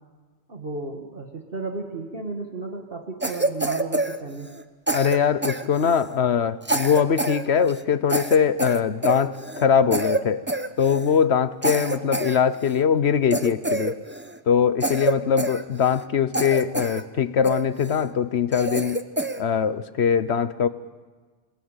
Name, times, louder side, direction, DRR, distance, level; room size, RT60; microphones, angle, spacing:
voice 1, 0.5-4.5 11.7-12.3, right 3 dB, 55° right, 3 dB, 2.0 m, -34 dB
Cough, 3.2-4.6 4.9-6.1 6.6-7.4 7.7-7.8 8.1-9.6 9.9-10.2 10.5-11.1 11.6-12.8 13.3-14.4 14.8-16.0 16.3-17.0 17.4-18.0 18.5-19.4, right 2 dB, 10° right, 0.9 m, -27 dB
voice 2, 4.9-10.4 10.8-13.9 14.5-19.0 19.4-20.7, left 7 dB, 70° left, 14 dB, 1.2 m, -22 dB
28.5 x 20.5 x 9.0 m, 1.4 s
omnidirectional pair, 1.1 m